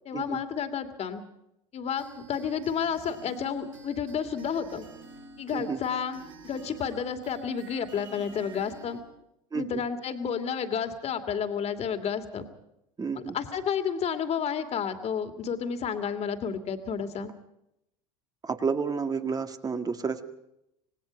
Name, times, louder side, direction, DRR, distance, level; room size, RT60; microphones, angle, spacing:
voice 1, 0.0-1.2 1.7-4.8 5.4-9.0 9.5-12.5 13.1-17.3, left 7 dB, 40° left, 8 dB, 2.6 m, -31 dB
sound 1, 2.0-9.0, right 3 dB, 90° right, 6.4 m, -48 dB
voice 2, 9.5-9.8 13.0-13.4 18.4-20.2, right 5 dB, 25° right, 7 dB, 1.9 m, -30 dB
26.5 x 19.0 x 5.3 m, 0.82 s
hypercardioid pair, 90°, 16 cm